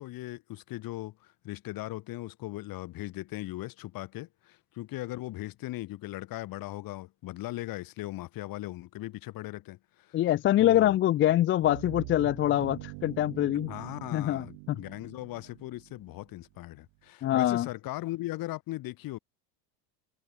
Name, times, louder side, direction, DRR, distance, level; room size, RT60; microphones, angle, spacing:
voice 1, 0.0-10.2 10.6-11.0 13.7-19.2, left 17 dB, 45° left, 1.3 m, -39 dB
voice 2, 10.1-13.7 14.1-14.8 17.2-17.7, left 13 dB, 25° left, 0.4 m, -25 dB
sound 1, 11.6-16.5, right 36 dB, 70° right, 3.3 m, -44 dB
supercardioid pair, 135°, 49 cm